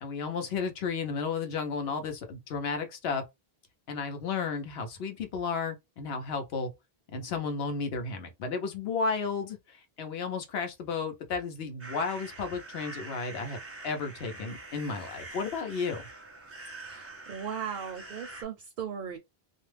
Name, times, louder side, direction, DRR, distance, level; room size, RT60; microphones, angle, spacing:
voice 1, 0.0-3.2 3.9-6.7 7.1-13.6 13.8-16.1, left 5 dB, 80° left, 0.9 m, -33 dB
sound 1, 11.8-18.4, right 2 dB, 20° right, 0.5 m, -45 dB
voice 2, 16.8-19.2, right 7 dB, 60° right, 0.6 m, -37 dB
2.4 x 2.1 x 3.2 m
omnidirectional pair, 1.0 m